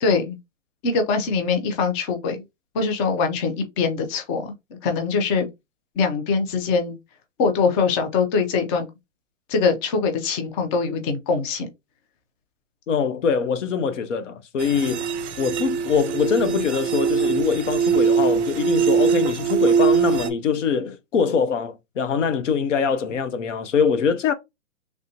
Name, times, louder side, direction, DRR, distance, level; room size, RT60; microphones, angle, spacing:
voice 1, 0.0-0.4 0.8-2.4 2.7-4.5 4.8-5.5 6.0-7.0 7.4-8.9 9.5-11.7, left 4 dB, 25° left, 0.6 m, -23 dB
voice 2, 12.9-15.1 15.4-24.3, left 6 dB, 70° left, 0.8 m, -23 dB
sound 1, 14.6-20.3, right 6 dB, 60° right, 0.6 m, -22 dB
3.4 x 2.6 x 2.7 m
hypercardioid pair, 130°, 39 cm